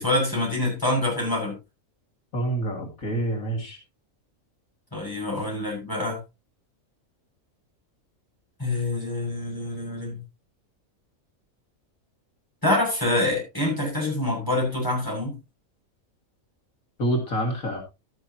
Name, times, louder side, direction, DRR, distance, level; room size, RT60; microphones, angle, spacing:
voice 1, 0.0-1.6 4.9-6.2 8.6-10.2 12.6-15.4, left 2 dB, 15° left, -2 dB, 6.9 m, -26 dB
voice 2, 2.3-3.8 17.0-17.8, right 1 dB, 85° left, 1 dB, 2.8 m, -27 dB
12.5 x 11.0 x 2.9 m, 0.26 s
omnidirectional pair, 1.4 m